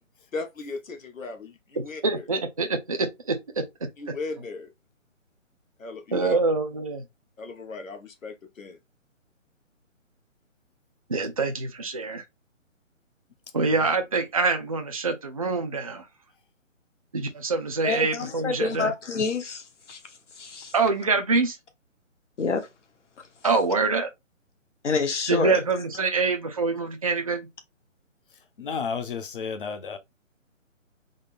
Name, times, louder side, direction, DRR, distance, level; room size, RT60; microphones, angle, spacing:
voice 1, 0.3-2.3 4.0-4.7 5.8-6.4 7.4-8.8, left 3 dB, 85° left, 0.9 m, -37 dB
voice 2, 2.0-3.6 6.1-7.0 11.1-12.2 13.5-16.1 17.1-18.9 20.7-21.6 23.4-24.1 25.3-27.5, right 4 dB, 30° right, 0.4 m, -25 dB
voice 3, 17.8-20.0 20.4-20.7 22.4-22.7 24.8-25.6, left 4 dB, 65° left, 1.1 m, -27 dB
voice 4, 28.3-30.0, left 5 dB, 45° left, 0.7 m, -33 dB
3.7 x 2.1 x 4.1 m
figure-of-eight pair, 150°, 39 cm